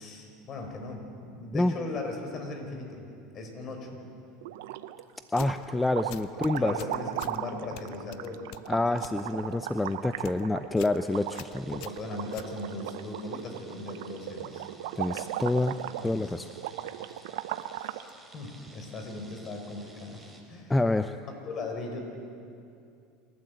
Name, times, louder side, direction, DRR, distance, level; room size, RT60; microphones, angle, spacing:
voice 1, 0.0-4.0 6.4-8.5 8.7-9.0 11.7-14.7 15.8-16.3 17.8-18.0 18.3-20.7 21.5-22.0, left 2 dB, 45° left, 3 dB, 4.8 m, -38 dB
sound 1, 4.4-5.0 5.4-18.1, right 13 dB, 75° right, 0.8 m, -37 dB
sound 2, 5.3-5.7 6.1-7.4 7.8-9.2 9.5-9.8 10.1-10.4 10.8-11.0 11.3-13.0, left 15 dB, 65° left, 0.7 m, -46 dB
voice 2, 5.3-6.7 8.7-11.8 15.0-15.8 16.0-16.5 20.7-21.2, left 2 dB, 10° left, 10 dB, 0.6 m, -27 dB
sound 3, 11.1-20.4, right 2 dB, 5° right, 3.8 m, -55 dB
28.0 x 12.5 x 8.0 m, 2.5 s
hypercardioid pair, 100°, 0 cm